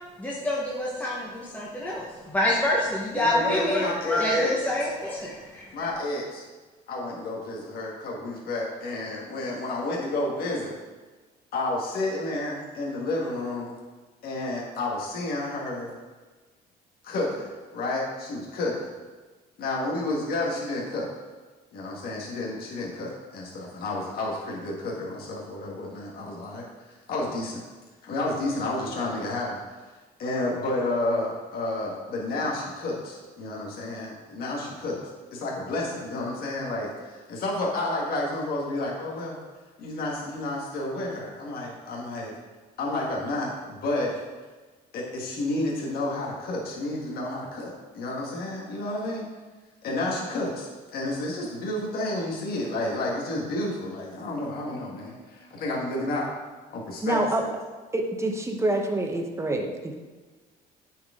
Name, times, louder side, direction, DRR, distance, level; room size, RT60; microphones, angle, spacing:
voice 1, 0.2-5.6, left 1 dB, 10° left, -6 dB, 1.2 m, -26 dB
voice 2, 3.1-4.2 5.4-6.4 6.9-10.7 11.5-13.7 14.2-15.9 17.0-18.9 19.6-21.1 21.7-27.6 28.0-29.6 30.2-35.0 35.3-39.4 39.8-42.3 42.8-44.2 44.9-49.2 49.8-56.3 56.7-57.2, left 2 dB, 65° left, -3 dB, 1.6 m, -31 dB
voice 3, 57.0-57.4 57.9-59.9, right 2 dB, 15° right, 3 dB, 1.0 m, -26 dB
9.1 x 4.8 x 3.7 m, 1.3 s
cardioid pair, 110°, 17 cm